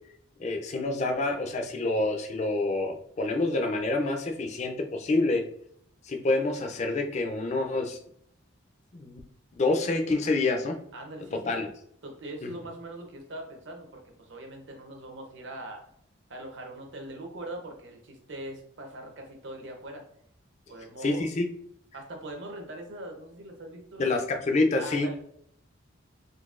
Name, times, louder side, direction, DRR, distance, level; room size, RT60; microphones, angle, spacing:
voice 1, 0.4-5.4 6.1-8.0 8.9-9.2 9.6-10.8 11.5-11.7 12.4-12.5 21.0-21.5 24.0-25.1, left 2 dB, 35° left, 4 dB, 0.3 m, -27 dB
voice 2, 10.9-11.5 12.0-15.8 16.3-20.0 20.7-21.2 21.9-24.2 24.8-25.2, right 1 dB, 60° right, 2 dB, 0.7 m, -41 dB
3.8 x 2.7 x 2.4 m, 0.68 s
head